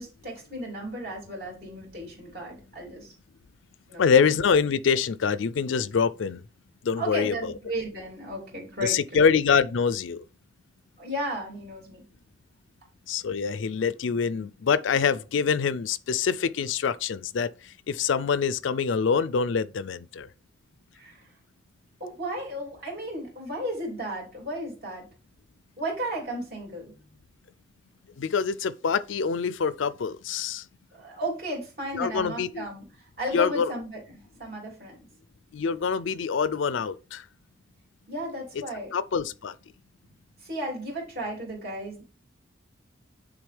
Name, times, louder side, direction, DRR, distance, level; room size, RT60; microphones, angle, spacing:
voice 1, 0.0-3.1 3.9-4.2 7.0-9.3 11.0-12.0 20.9-21.3 22.0-25.1 25.8-26.9 30.9-35.0 38.1-38.9 40.4-42.0, right 1 dB, 50° right, 3.3 m, -34 dB
voice 2, 4.0-6.4 6.8-7.3 8.8-10.2 13.1-17.5 17.9-20.3 28.2-30.6 32.0-32.7 33.3-33.7 35.5-37.2 38.9-39.5, left 6 dB, 80° left, 0.4 m, -25 dB
9.5 x 3.7 x 3.3 m
head